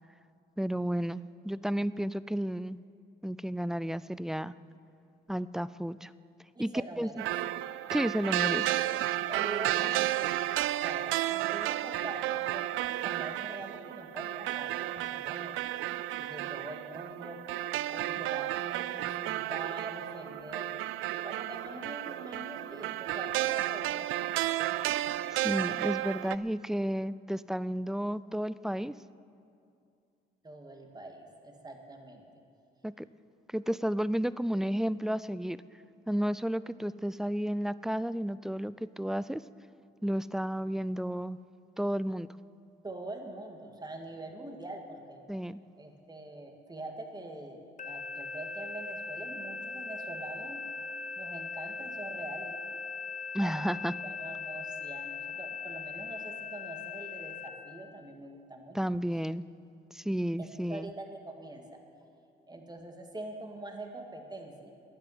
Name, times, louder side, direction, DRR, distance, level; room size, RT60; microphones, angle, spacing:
voice 1, 0.6-2.8 3.2-4.5 5.3-6.1 6.6-6.7 7.0-7.1 7.9-8.7 25.3-28.9 32.8-33.1 33.5-35.6 36.1-39.4 40.0-41.4 41.8-42.3 45.3-45.6 53.3-53.9 58.7-59.4 59.9-60.9, equal, ahead, 17 dB, 0.3 m, -32 dB
voice 2, 6.6-7.2 9.3-15.5 16.2-17.4 17.9-20.7 21.2-24.1 30.4-32.3 42.8-45.2 45.8-50.6 51.2-52.5 53.4-53.7 54.0-58.8 60.4-61.8 62.5-64.7, right 2 dB, 20° right, 3 dB, 2.1 m, -44 dB
sound 1, 7.2-26.4, right 15 dB, 85° right, 0.4 m, -32 dB
sound 2, 47.8-57.5, left 4 dB, 40° left, 1.0 m, -40 dB
12.0 x 10.5 x 9.4 m, 2.5 s
cardioid pair, 90°, 20 cm